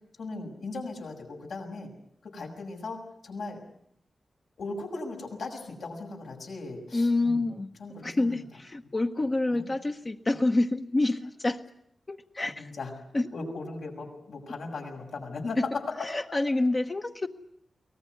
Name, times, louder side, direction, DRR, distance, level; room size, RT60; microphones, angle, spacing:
voice 1, 0.2-1.9 2.2-3.6 4.6-7.5 7.8-8.4 9.5-9.7 12.6-12.9 13.3-16.1, left 3 dB, 80° left, 2 dB, 6.7 m, -37 dB
voice 2, 6.9-7.7 8.0-11.6 12.1-12.7 13.1-13.3 16.0-17.3, left 2 dB, 30° left, 5 dB, 0.9 m, -27 dB
23.0 x 19.0 x 9.5 m, 0.72 s
wide cardioid pair, 140°, 0 cm